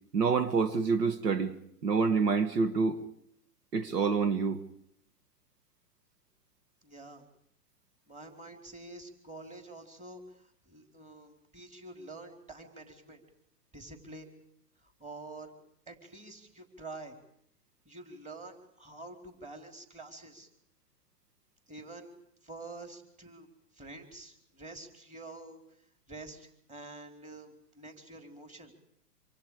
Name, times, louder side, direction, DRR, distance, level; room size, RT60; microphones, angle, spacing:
voice 1, 0.1-1.6 1.8-3.0 3.7-4.6, right 5 dB, 80° right, 1.9 m, -27 dB
voice 2, 6.8-7.3 8.1-13.2 13.7-14.3 14.8-15.5 15.9-17.2 17.8-20.5 21.7-22.1 22.4-23.5 23.7-25.6 26.1-28.7, right 2 dB, 15° right, 4.4 m, -47 dB
27.5 x 26.5 x 5.1 m
hypercardioid pair, 125°, 47 cm